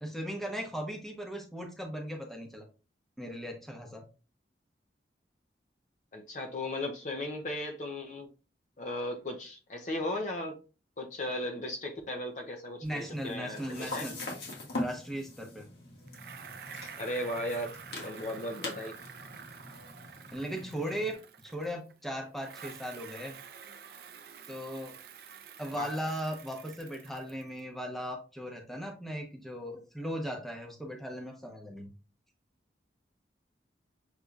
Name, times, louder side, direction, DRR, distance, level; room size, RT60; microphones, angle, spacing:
voice 1, 0.0-2.6 3.2-4.0 12.8-14.2 14.8-15.7 20.3-23.4 24.5-25.0 25.6-31.9, equal, ahead, 1 dB, 0.9 m, -38 dB
voice 2, 6.1-8.3 8.8-10.6 11.0-14.1 17.0-19.0 25.8-25.9, left 1 dB, 45° left, 3 dB, 0.6 m, -36 dB
sound 1, 12.8-21.1, left 2 dB, 70° left, 1.6 m, -42 dB
Bicycle, 16.1-21.9 22.4-27.6, right 7 dB, 55° right, 0.5 m, -49 dB
6.5 x 2.9 x 2.4 m, 0.33 s
head